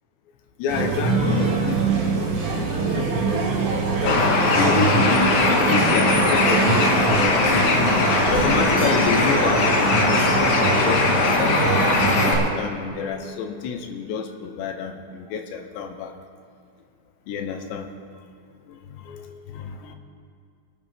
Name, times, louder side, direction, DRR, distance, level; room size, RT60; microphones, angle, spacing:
voice 1, 0.6-7.8 8.3-10.0 10.4-16.2 17.3-17.9 18.7-20.0, left 6 dB, 90° left, 5 dB, 3.3 m, -29 dB
sound 1, 0.7-12.4, right 4 dB, 75° right, 4.9 m, -23 dB
Bird, 4.1-12.3, left 3 dB, 65° left, 2.8 m, -20 dB
25.0 x 9.5 x 3.6 m, 2.4 s
omnidirectional pair, 4.9 m